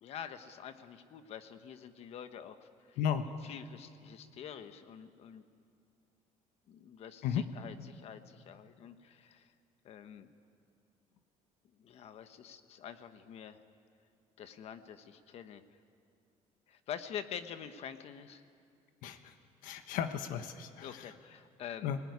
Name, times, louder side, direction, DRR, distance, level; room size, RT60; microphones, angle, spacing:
voice 1, 0.0-3.0 3.4-5.4 6.7-9.5 9.8-10.3 11.8-13.6 14.4-15.6 16.7-18.4 20.8-22.0, left 8 dB, 50° left, 9 dB, 1.3 m, -46 dB
voice 2, 19.6-20.9 21.8-22.0, left 8 dB, 80° left, 8 dB, 1.4 m, -34 dB
25.0 x 20.0 x 9.7 m, 2.4 s
cardioid pair, 165°, 14 cm